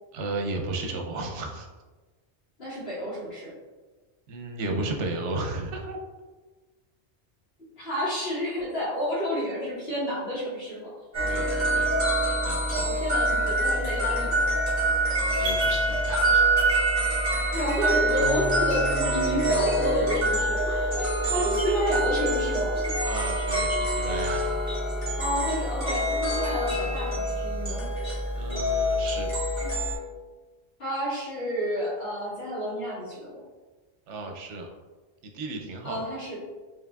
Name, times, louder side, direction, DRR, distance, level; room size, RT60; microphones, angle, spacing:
voice 1, 0.1-1.7 4.3-6.0 11.2-11.9 12.4-12.9 15.1-16.4 16.7-16.8 21.4-21.6 23.0-24.5 28.3-29.3 34.1-34.7 35.2-36.0, right 2 dB, 85° right, 2 dB, 0.9 m, -34 dB
voice 2, 2.6-3.5 7.8-10.9 12.8-14.4 17.5-22.9 25.2-27.9 30.8-33.4 35.8-36.4, equal, 60° left, -8 dB, 1.8 m, -30 dB
sound 1, 11.1-30.0, right 1 dB, 50° right, 1.6 m, -25 dB
4.6 x 3.2 x 2.3 m, 1.3 s
omnidirectional pair, 1.2 m